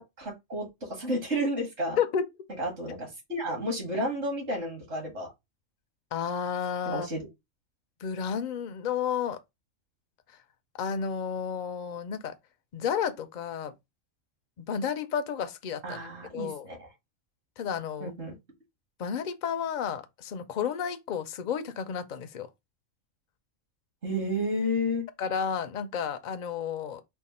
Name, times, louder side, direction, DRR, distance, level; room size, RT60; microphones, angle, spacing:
voice 1, 0.0-2.0 2.6-5.3 6.9-7.2 15.8-16.9 18.0-18.3 24.0-25.1, equal, 55° right, 1.9 m, -31 dB
voice 2, 6.1-7.1 8.0-9.4 10.8-12.3 12.7-13.7 14.6-16.0 16.3-16.6 17.6-18.1 19.0-22.5 25.2-27.0, left 7 dB, 60° left, 0.5 m, -31 dB
4.5 x 2.1 x 4.1 m
omnidirectional pair, 1.4 m